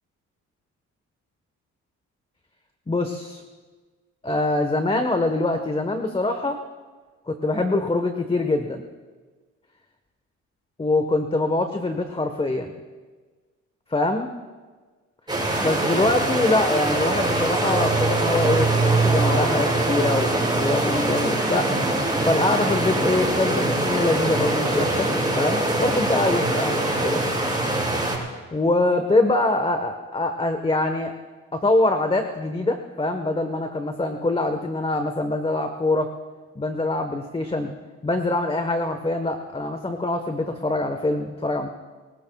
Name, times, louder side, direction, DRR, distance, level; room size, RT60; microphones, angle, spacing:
voice 1, 2.9-3.4 4.2-6.6 7.3-8.8 10.8-12.7 13.9-14.3 15.6-21.7 22.2-25.1 25.3-27.2 28.5-31.1 31.5-36.1 36.5-37.7 38.0-41.7, left 2 dB, 20° left, 6 dB, 1.3 m, -24 dB
sound 1, 15.3-28.2, right 2 dB, 15° right, 6.5 m, -23 dB
29.0 x 19.0 x 2.4 m, 1.4 s
cardioid pair, 90°, 30 cm